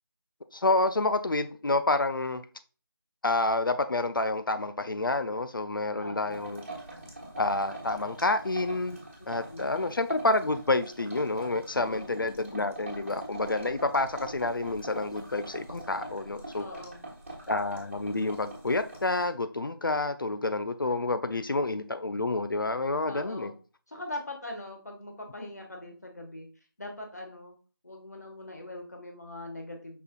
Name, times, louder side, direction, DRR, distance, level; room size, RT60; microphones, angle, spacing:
voice 1, 0.5-2.4 3.2-6.7 7.4-9.0 9.3-16.7 17.5-23.5, left 2 dB, 60° left, 0.4 m, -28 dB
voice 2, 6.0-6.4 9.5-9.6 11.7-12.1 16.6-17.0 23.1-23.5 23.9-26.5 26.8-27.6 27.8-30.0, left 2 dB, 45° left, 1.3 m, -41 dB
sound 1, 6.3-19.3, right 2 dB, 30° right, 1.4 m, -44 dB
5.5 x 4.1 x 2.2 m
figure-of-eight pair, 180°, 12 cm